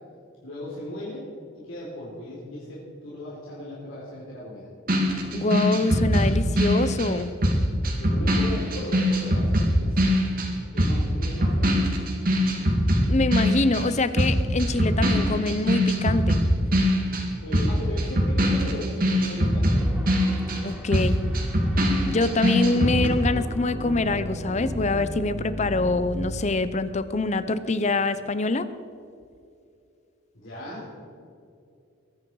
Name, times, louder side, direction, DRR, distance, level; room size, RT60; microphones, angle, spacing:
voice 1, 0.4-1.3 1.5-4.7 7.5-7.7 8.0-10.3 10.7-11.7 17.4-19.9 30.3-31.0, left 1 dB, 75° left, -7 dB, 3.9 m, -37 dB
sound 1, 4.9-13.9 14.2-23.1, equal, 45° right, 2.1 m, -22 dB
voice 2, 5.3-7.3 13.1-16.4 20.6-21.2 22.1-28.7, left 2 dB, 35° left, 13 dB, 0.6 m, -25 dB
sound 2, 19.8-26.3, equal, 5° right, 1.9 m, -36 dB
22.0 x 9.7 x 4.8 m, 2.4 s
head